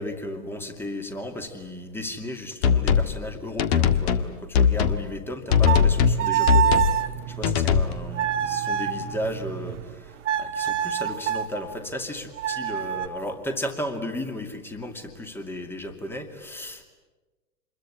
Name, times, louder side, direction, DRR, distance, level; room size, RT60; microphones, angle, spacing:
voice 1, 0.0-16.8, left 1 dB, 5° left, 7 dB, 2.3 m, -34 dB
sint bass, 2.6-3.1 3.6-4.3 4.5-5.0 5.5-6.2 6.5-7.0 7.4-7.9, left 7 dB, 40° left, 1.7 m, -20 dB
sound 1, 5.5-9.9 10.2-11.5 12.4-13.1, right 10 dB, 50° right, 1.5 m, -27 dB
27.0 x 22.0 x 9.7 m, 1.2 s
hypercardioid pair, 125°, 48 cm